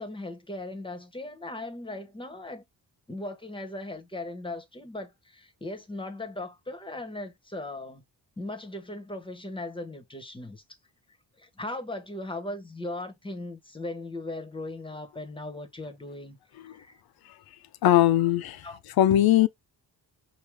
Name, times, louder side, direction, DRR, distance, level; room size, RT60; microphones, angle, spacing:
voice 1, 0.0-2.6 3.1-8.0 8.4-10.6 11.4-16.4 16.6-17.0 18.6-18.8, left 2 dB, 15° left, 0.9 m, -38 dB
voice 2, 17.8-18.7 19.0-19.5, left 13 dB, 75° left, 0.6 m, -20 dB
4.9 x 2.6 x 3.4 m
cardioid pair, 130°, 37 cm